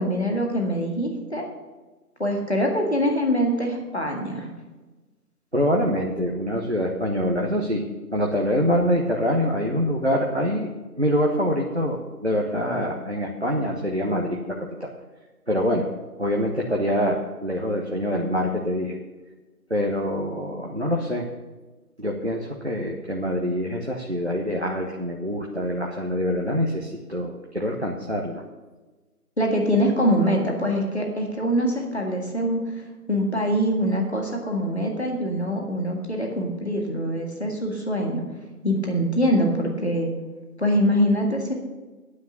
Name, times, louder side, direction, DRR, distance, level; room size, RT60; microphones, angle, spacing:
voice 1, 0.0-1.5 2.2-4.5 29.4-38.2 38.6-40.1 40.6-41.5, equal, 45° left, 1 dB, 1.9 m, -24 dB
voice 2, 5.5-7.8 8.1-10.7 11.0-14.9 15.5-15.9 16.2-19.0 19.7-21.3 22.0-28.4, equal, 45° right, 0 dB, 1.1 m, -25 dB
9.7 x 9.1 x 6.5 m, 1.2 s
figure-of-eight pair, 175°, 46 cm